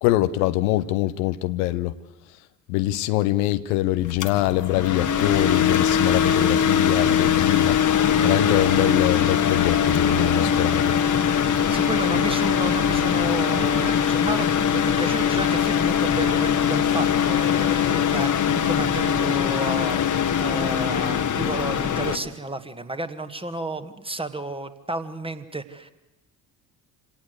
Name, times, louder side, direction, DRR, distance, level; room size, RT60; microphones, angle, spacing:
voice 1, 0.0-2.0 2.7-7.8 8.2-11.0, left 16 dB, 65° left, 0.9 m, -23 dB
sound 1, 4.0-22.2, left 8 dB, 35° left, 1.6 m, -21 dB
voice 2, 11.7-25.9, right 2 dB, 10° right, 1.8 m, -32 dB
26.5 x 18.0 x 8.2 m
figure-of-eight pair, 50°, 50 cm